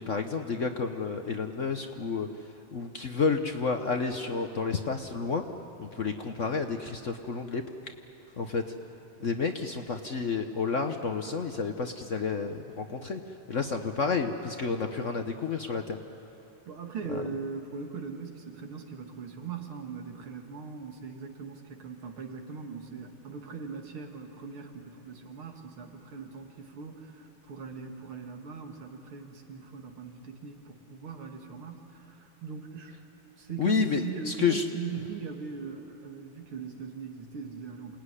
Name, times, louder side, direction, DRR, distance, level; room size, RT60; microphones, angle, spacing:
voice 1, 0.0-2.3 2.7-5.4 5.8-7.6 8.4-8.6 9.2-13.2 13.5-16.0 33.6-34.6, left 5 dB, 50° left, 6 dB, 1.0 m, -30 dB
voice 2, 16.7-33.0 33.4-38.0, right 5 dB, 85° right, 3 dB, 2.9 m, -40 dB
28.0 x 18.5 x 9.9 m, 2.9 s
omnidirectional pair, 2.3 m